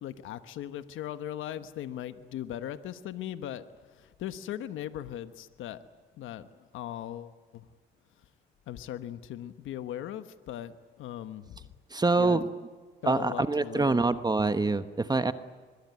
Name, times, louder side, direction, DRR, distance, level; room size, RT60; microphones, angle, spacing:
voice 1, 0.0-3.6 3.9-5.8 6.2-7.7 8.7-11.7 12.2-12.4 13.0-14.0, left 11 dB, 85° left, 11 dB, 1.2 m, -39 dB
voice 2, 11.9-12.5 13.0-15.3, right 3 dB, 20° right, 11 dB, 1.1 m, -25 dB
24.0 x 21.5 x 9.7 m, 1.5 s
cardioid pair, 90°, 20 cm